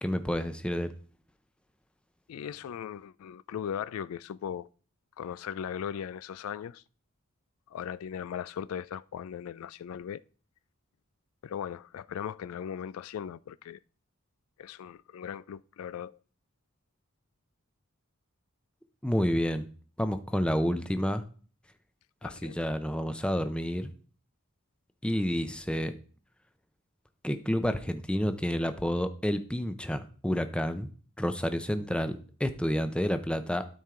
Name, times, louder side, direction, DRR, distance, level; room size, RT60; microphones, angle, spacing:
voice 1, 0.0-0.9 19.0-19.7 20.0-21.2 22.2-23.9 25.0-25.9 27.2-30.9 31.2-33.7, equal, 5° left, 0.6 m, -29 dB
voice 2, 2.3-4.7 5.2-6.8 7.7-10.2 11.4-13.8 14.6-16.2 22.2-22.6, left 8 dB, 80° left, 0.3 m, -38 dB
12.5 x 4.5 x 3.7 m
head